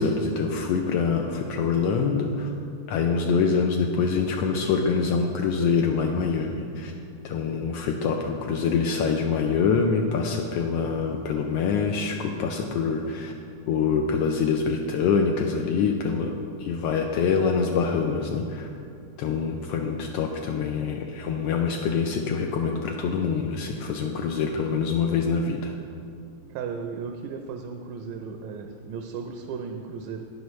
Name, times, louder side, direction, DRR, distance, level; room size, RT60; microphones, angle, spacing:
voice 1, 0.0-2.5 2.9-6.9 7.2-13.3 13.7-18.7 19.2-25.7, left 5 dB, 85° left, 2 dB, 1.4 m, -25 dB
voice 2, 26.5-30.3, right 5 dB, 80° right, 4 dB, 1.9 m, -35 dB
12.5 x 9.4 x 3.1 m, 2.4 s
omnidirectional pair, 3.3 m